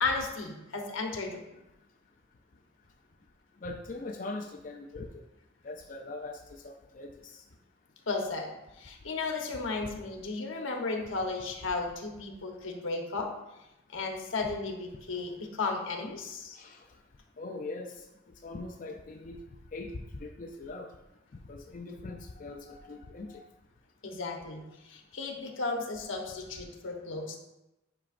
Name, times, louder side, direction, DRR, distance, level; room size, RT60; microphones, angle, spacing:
voice 1, 0.0-1.5 8.1-8.5 8.8-13.3 13.9-16.6 24.0-27.4, left 3 dB, 75° left, 2 dB, 1.0 m, -34 dB
voice 2, 3.6-5.2 5.6-7.4 15.1-15.2 16.5-16.9 17.4-18.1 18.4-19.4 19.7-20.9 21.5-23.4 26.3-26.4, left 2 dB, 40° left, 4 dB, 0.4 m, -41 dB
8.8 x 4.8 x 2.5 m, 0.93 s
head